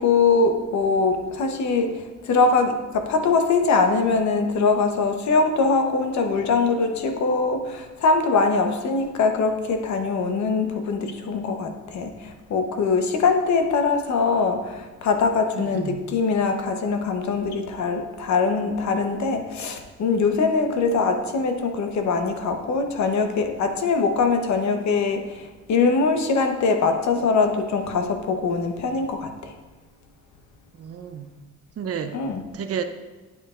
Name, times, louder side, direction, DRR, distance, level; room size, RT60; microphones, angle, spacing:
voice 1, 0.0-2.0 2.3-25.2 25.7-29.5 32.1-32.4, left 4 dB, 65° left, 5 dB, 1.0 m, -22 dB
voice 2, 15.5-16.0 30.8-31.3 31.8-32.2 32.5-32.8, right 7 dB, 50° right, 8 dB, 0.7 m, -31 dB
8.9 x 8.0 x 2.5 m, 1.3 s
cardioid pair, 90°, 30 cm